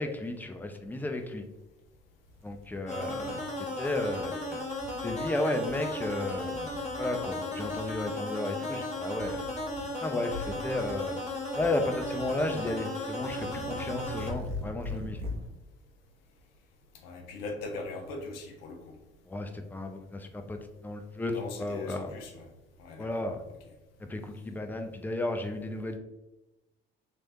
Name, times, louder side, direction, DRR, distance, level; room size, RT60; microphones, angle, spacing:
voice 1, 0.0-1.4 2.4-4.6 5.0-6.7 7.0-9.4 10.0-11.2 11.5-15.2 19.3-22.1 23.0-23.4 24.0-26.0, left 2 dB, 5° left, 5 dB, 0.4 m, -33 dB
sound 1, 1.9-2.0 2.3-3.4 3.8-4.3 4.7-5.3 5.6-7.3 7.6-8.1 9.1-9.9 10.2-11.2 11.6-12.8 13.1-15.5, left 1 dB, 70° right, 0.6 m, -42 dB
voice 2, 2.9-3.4 17.0-19.0 21.3-22.3 22.8-23.1, left 3 dB, 75° left, 3 dB, 0.7 m, -40 dB
sound 2, 2.9-14.3, left 2 dB, 25° left, 1.2 m, -35 dB
3.1 x 3.0 x 2.6 m, 1.0 s
figure-of-eight pair, 50°, 29 cm